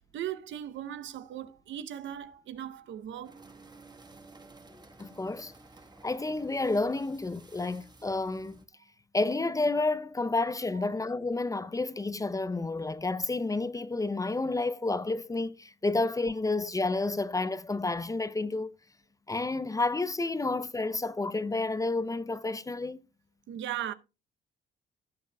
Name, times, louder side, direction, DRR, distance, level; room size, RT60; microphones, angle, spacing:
voice 1, 0.0-3.4 10.8-10.9 23.5-23.9, right 11 dB, 70° right, 0.7 m, -38 dB
sound 1, 3.2-8.6, right 3 dB, 20° right, 1.3 m, -54 dB
voice 2, 5.0-5.5 6.0-8.6 9.1-18.7 19.3-23.0, left 3 dB, 15° left, 0.5 m, -30 dB
16.5 x 7.0 x 2.2 m
cardioid pair, 90°, 20 cm